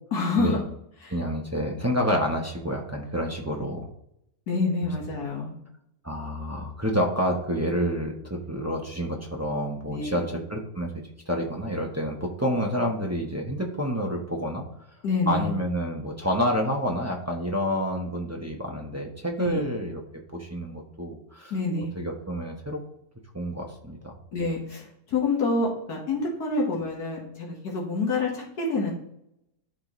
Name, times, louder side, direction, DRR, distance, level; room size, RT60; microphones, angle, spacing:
voice 1, 0.1-0.6 1.0-1.1 4.5-5.5 9.9-10.3 15.0-15.5 19.4-19.7 21.5-21.9 24.3-28.9, left 3 dB, 75° left, -2 dB, 1.8 m, -27 dB
voice 2, 1.1-3.9 6.0-10.9 11.3-14.6 15.3-20.0 20.3-21.6 21.9-22.8 23.3-24.1, equal, 15° right, 0 dB, 0.5 m, -28 dB
11.5 x 4.0 x 3.1 m, 0.77 s
omnidirectional pair, 1.7 m